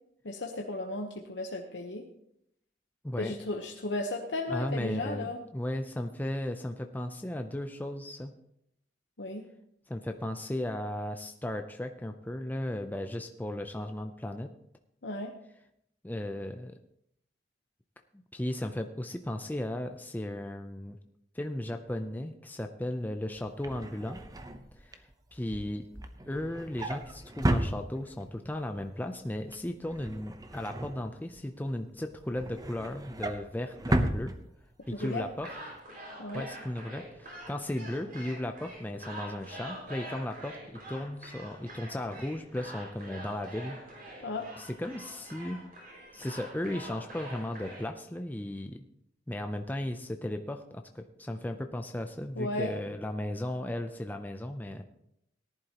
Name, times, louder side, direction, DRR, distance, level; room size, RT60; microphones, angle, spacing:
voice 1, 0.2-2.0 3.2-5.4 9.2-9.4 15.0-15.3 34.9-35.3 36.2-36.5 44.2-44.5 52.4-52.7, left 2 dB, 70° left, 2 dB, 1.0 m, -35 dB
voice 2, 3.0-3.4 4.5-8.3 9.9-14.5 16.0-16.8 18.3-21.0 21.3-24.2 24.8-25.0 25.3-25.9 26.3-34.3 34.9-35.5 36.3-43.8 44.2-44.3 44.6-45.6 46.1-48.8 49.3-54.8, left 1 dB, 10° left, 5 dB, 0.5 m, -36 dB
Drawer open or close, 23.4-28.4 28.8-29.1 29.3-31.6 32.0-35.0 35.3-35.5 35.8-35.9, right 1 dB, 20° right, 0.8 m, -34 dB
sound 1, 34.8-47.9, right 1 dB, 50° right, 5.4 m, -46 dB
18.0 x 11.0 x 3.0 m, 0.75 s
head